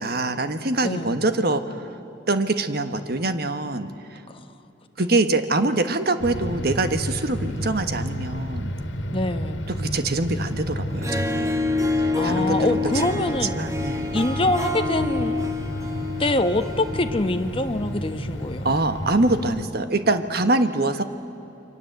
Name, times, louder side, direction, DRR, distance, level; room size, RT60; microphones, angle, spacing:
voice 1, 0.0-1.6 2.3-4.2 5.0-8.7 9.7-11.6 12.0-12.6 12.9-13.2 13.5-14.1 18.6-21.0, right 2 dB, 55° right, 9 dB, 1.5 m, -24 dB
voice 2, 0.8-1.2 4.3-4.4 9.1-9.6 12.2-13.6 14.1-15.4 16.2-18.7, left 2 dB, 30° left, 7 dB, 1.1 m, -24 dB
sound 1, 6.2-19.7, equal, 75° left, 2.1 m, -32 dB
Harp, 10.9-18.3, left 2 dB, 15° right, 1.4 m, -28 dB
29.5 x 24.0 x 8.1 m, 2.9 s
head